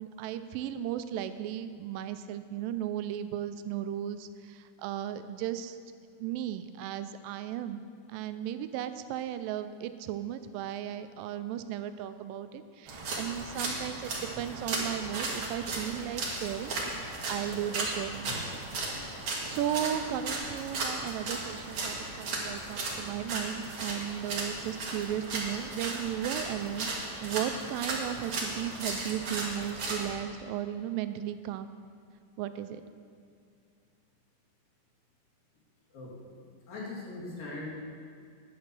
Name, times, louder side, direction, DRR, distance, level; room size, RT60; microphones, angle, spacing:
voice 1, 0.0-5.8 6.2-7.8 8.1-18.3 19.0-26.9 27.2-31.7 32.4-32.8, right 11 dB, 80° right, 11 dB, 2.2 m, -35 dB
sound 1, 12.9-30.1, right 2 dB, 50° right, 1.8 m, -36 dB
voice 2, 35.9-36.4 36.7-37.7, left 2 dB, 75° left, -5 dB, 3.9 m, -40 dB
9.9 x 8.4 x 6.0 m, 2.3 s
omnidirectional pair, 4.1 m